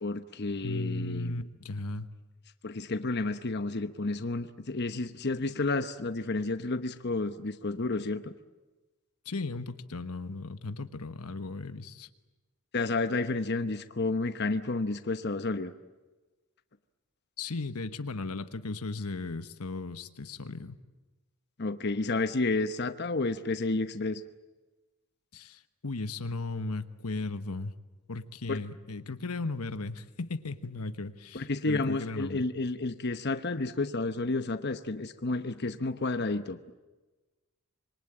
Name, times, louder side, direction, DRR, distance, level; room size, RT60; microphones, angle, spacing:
voice 1, 0.0-1.4 2.6-8.3 12.7-15.7 21.6-24.2 28.5-28.6 31.3-36.6, left 3 dB, 50° left, 9 dB, 1.0 m, -31 dB
voice 2, 0.6-2.1 9.2-12.1 17.4-20.8 25.3-27.7 28.1-32.4, left 3 dB, 90° left, 11 dB, 1.2 m, -36 dB
26.0 x 23.5 x 8.9 m, 1.2 s
head